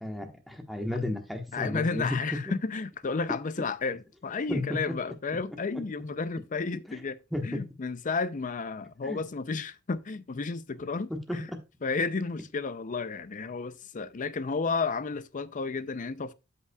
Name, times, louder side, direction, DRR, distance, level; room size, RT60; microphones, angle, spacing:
voice 1, 0.0-2.6 4.5-5.0 7.3-7.6 9.0-9.2 11.1-11.4, left 1 dB, ahead, 1.2 m, -33 dB
voice 2, 1.5-7.2 7.4-11.5 11.8-16.3, left 4 dB, 40° left, 0.5 m, -32 dB
12.5 x 5.7 x 2.3 m
head